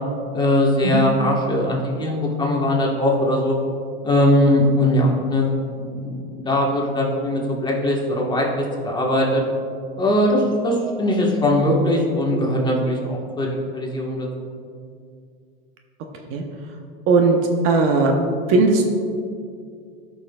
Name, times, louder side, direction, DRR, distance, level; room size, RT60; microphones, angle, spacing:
voice 1, 0.3-3.5 4.0-9.4 10.0-13.5 13.7-14.5, left 1 dB, 15° left, -2 dB, 1.3 m, -20 dB
voice 2, 17.1-17.4 17.6-18.1 18.5-18.8, right 3 dB, 50° right, 3 dB, 0.8 m, -17 dB
12.5 x 5.6 x 2.3 m, 2.3 s
supercardioid pair, 125°, 29 cm